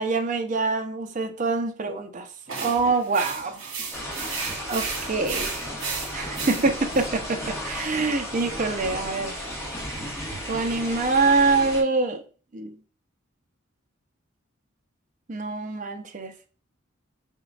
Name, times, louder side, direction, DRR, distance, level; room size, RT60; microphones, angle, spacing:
voice 1, 0.0-2.3 2.6-3.6 4.2-5.7 6.1-9.3 10.4-12.2 12.5-12.8 15.3-16.3, right 3 dB, 40° right, 0.6 m, -25 dB
sound 1, 2.5-7.1, right 5 dB, 85° right, 1.3 m, -34 dB
sound 2, 3.9-11.8, equal, 15° left, 1.3 m, -34 dB
4.9 x 3.6 x 2.4 m
head